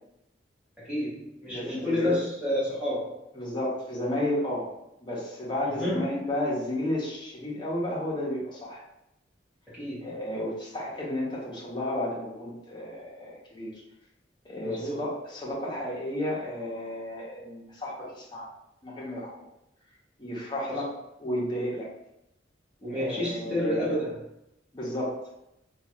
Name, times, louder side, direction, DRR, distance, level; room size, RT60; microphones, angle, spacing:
voice 1, 0.9-3.2 5.7-6.1 9.7-10.2 14.6-15.0 20.7-20.8 22.8-24.1, left 1 dB, 5° right, -9 dB, 1.0 m, -30 dB
voice 2, 1.5-2.1 3.3-4.7 5.0-8.8 10.0-13.7 14.4-18.5 18.8-19.4 20.2-20.9 21.2-21.9 22.9-24.0 24.7-25.2, left 1 dB, 25° left, -6 dB, 0.8 m, -32 dB
3.0 x 2.4 x 2.9 m, 0.84 s
head